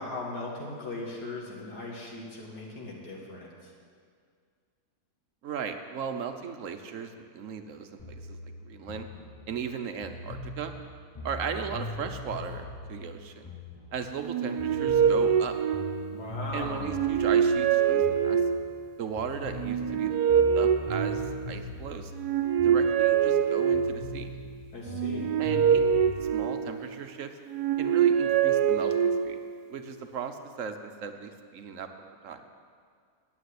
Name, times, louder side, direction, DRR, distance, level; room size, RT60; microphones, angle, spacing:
voice 1, 0.0-3.7 16.1-16.9 24.7-25.3, left 2 dB, 75° left, -3 dB, 2.3 m, -38 dB
voice 2, 5.4-9.1 9.5-10.7 11.2-13.5 13.9-15.5 16.5-18.4 19.0-20.3 20.5-22.1 22.6-24.3 25.4-27.3 27.8-29.4 29.7-31.9 32.2-32.4, right 6 dB, 60° right, 7 dB, 1.1 m, -37 dB
sound 1, 8.0-14.3 14.6-18.9 19.2-23.4 23.7-26.3, left 2 dB, 20° left, 1.1 m, -41 dB
sound 2, 14.2-16.3 16.8-18.8 19.5-21.7 22.1-24.2 24.9-27.0 27.5-29.5, right 8 dB, 80° right, 1.3 m, -25 dB
9.2 x 8.3 x 9.5 m, 2.1 s
omnidirectional pair, 1.7 m